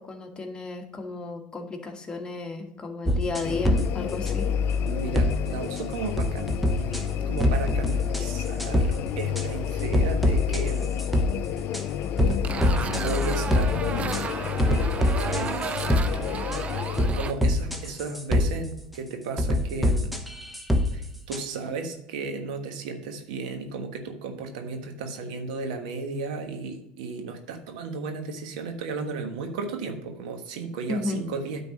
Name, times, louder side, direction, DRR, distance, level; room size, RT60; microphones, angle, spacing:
voice 1, 0.0-4.5 30.9-31.2, left 3 dB, 20° left, 3 dB, 1.5 m, -33 dB
sound 1, 3.1-3.8 4.3-4.4 5.1-5.3 5.8-5.9 6.2-7.0 7.4-8.3 8.6-8.9 9.4-9.5 9.9-11.3 11.7-11.8 12.2-13.7 14.1-14.2 14.6-16.1 16.5-16.6 17.0-18.5 19.4-20.9 21.3-21.4, left 1 dB, ahead, 1.0 m, -23 dB
sound 2, 3.4-17.1, left 8 dB, 55° left, 0.4 m, -29 dB
voice 2, 4.8-10.9 12.7-14.9 15.2-15.6 16.3-16.6 17.1-20.1 20.9-31.6, right 4 dB, 80° right, 5 dB, 1.3 m, -34 dB
sound 3, 12.4-17.3, right 6 dB, 30° right, 0.5 m, -33 dB
9.6 x 3.9 x 6.2 m, 0.79 s
supercardioid pair, 90°, 4 cm